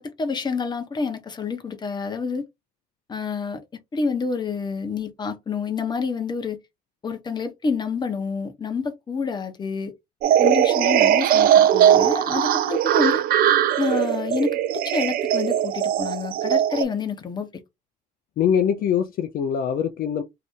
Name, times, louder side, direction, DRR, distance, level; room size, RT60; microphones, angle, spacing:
voice 1, 0.0-2.4 3.1-3.6 3.9-6.6 7.0-9.9 10.4-13.2 13.8-17.5, left 5 dB, 25° left, 0.8 m, -28 dB
sound 1, 10.2-16.8, right 10 dB, 60° right, 0.4 m, -19 dB
voice 2, 18.4-20.2, left 8 dB, 60° left, 0.5 m, -23 dB
2.8 x 2.5 x 3.4 m
cardioid pair, 110°, 17 cm